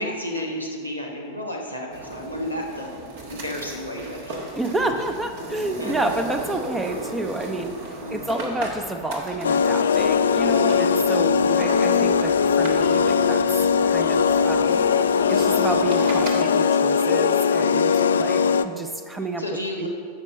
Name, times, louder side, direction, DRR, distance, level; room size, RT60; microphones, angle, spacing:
voice 1, 0.0-2.9 3.3-4.3 4.8-4.9 5.8-5.9 8.0-8.3 11.1-11.6 18.1-18.5 19.4-19.9, left 1 dB, 90° right, 0 dB, 1.2 m, -31 dB
sound 1, 1.9-16.3, right 2 dB, 55° right, 1.4 m, -36 dB
voice 2, 4.6-13.4 13.8-19.4 19.8-19.9, right 2 dB, 10° right, 6 dB, 0.6 m, -29 dB
sound 2, 9.4-18.6, left 6 dB, 65° left, 0.3 m, -20 dB
13.5 x 5.3 x 5.2 m, 2.2 s
figure-of-eight pair, 90°, 0 cm